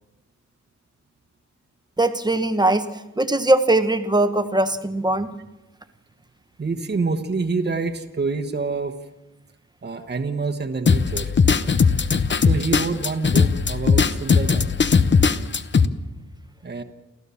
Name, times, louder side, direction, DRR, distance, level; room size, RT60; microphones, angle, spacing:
voice 1, 2.0-2.8 3.2-5.3, right 2 dB, 15° right, 9 dB, 1.1 m, -20 dB
voice 2, 6.6-8.9 9.8-11.3 12.4-14.7 16.6-16.8, right 4 dB, 30° right, 5 dB, 1.3 m, -27 dB
sound 1, 10.9-15.9, left 5 dB, 35° left, 0.8 m, -18 dB
29.0 x 14.0 x 7.2 m, 1.1 s
wide cardioid pair, 150°, 31 cm